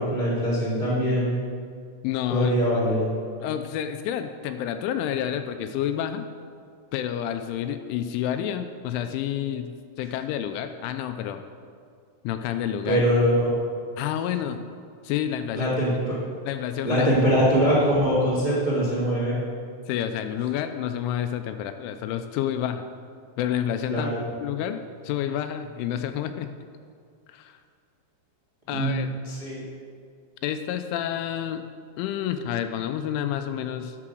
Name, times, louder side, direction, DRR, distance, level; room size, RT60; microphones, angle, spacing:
voice 1, 0.0-1.3 2.3-3.0 12.8-13.5 15.5-15.9 16.8-19.4 23.9-24.2 28.7-29.0 29.2-29.6, equal, 15° right, -7 dB, 1.2 m, -22 dB
voice 2, 2.0-2.5 3.4-6.3 6.9-11.4 12.2-13.0 14.0-14.6 15.0-15.8 16.5-17.1 19.9-22.8 23.4-24.1 24.4-26.5 27.3-27.6 28.7-29.1 30.4-31.7 32.0-34.0, left 10 dB, 85° left, 8 dB, 2.9 m, -29 dB
9.7 x 6.6 x 6.2 m, 2.1 s
omnidirectional pair, 5.6 m